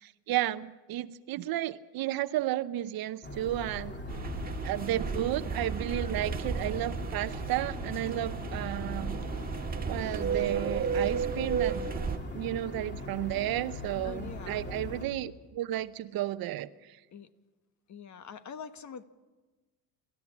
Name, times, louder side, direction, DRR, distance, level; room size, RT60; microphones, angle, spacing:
voice 1, 0.0-3.9 4.6-9.2 9.9-11.9 12.3-17.0, right 14 dB, 55° right, 0.8 m, -33 dB
sound 1, 3.2-15.1, left 1 dB, 25° left, 3.1 m, -40 dB
sound 2, 4.1-12.2, right 6 dB, 20° right, 1.6 m, -34 dB
voice 2, 14.0-14.6 17.1-17.3 17.9-19.0, left 6 dB, 40° left, 1.3 m, -44 dB
27.5 x 14.0 x 7.3 m
cardioid pair, 115°, 44 cm